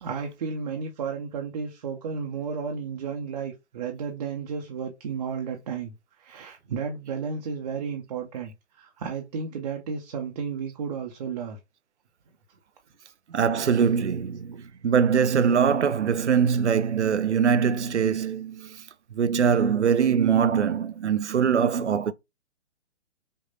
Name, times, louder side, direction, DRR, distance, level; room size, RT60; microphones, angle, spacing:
voice 1, 0.0-11.6, right 6 dB, 35° right, 0.7 m, -33 dB
voice 2, 13.3-18.8 19.1-22.1, right 7 dB, 80° right, 0.5 m, -22 dB
5.3 x 2.5 x 2.6 m
figure-of-eight pair, 130°, 35 cm